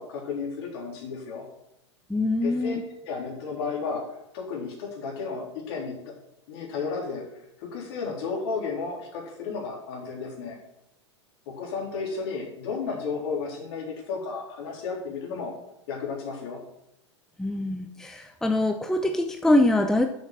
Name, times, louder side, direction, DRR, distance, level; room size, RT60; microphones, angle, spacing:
voice 1, 0.0-1.5 2.4-2.8 3.0-4.0 4.3-6.1 6.5-7.3 7.6-10.6 11.5-15.6 15.9-16.6, left 4 dB, 55° left, -1 dB, 3.5 m, -33 dB
voice 2, 2.1-2.8 17.4-20.1, left 1 dB, 5° left, 5 dB, 0.6 m, -24 dB
6.8 x 6.4 x 7.5 m, 0.81 s
hypercardioid pair, 95°, 15 cm